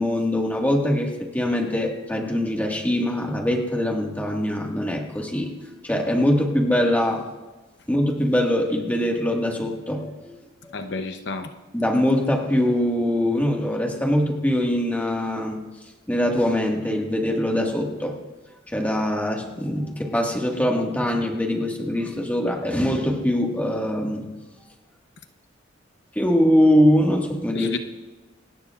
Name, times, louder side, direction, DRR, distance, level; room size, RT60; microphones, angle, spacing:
voice 1, 0.0-5.5 5.8-7.3 7.9-10.4 10.6-10.8 11.7-15.7 16.1-18.2 18.7-24.3 26.2-27.7, left 1 dB, 10° left, 0 dB, 1.7 m, -23 dB
voice 2, 10.7-11.5 27.5-27.8, left 3 dB, 65° left, 7 dB, 0.8 m, -30 dB
27.0 x 18.5 x 2.5 m, 1.2 s
head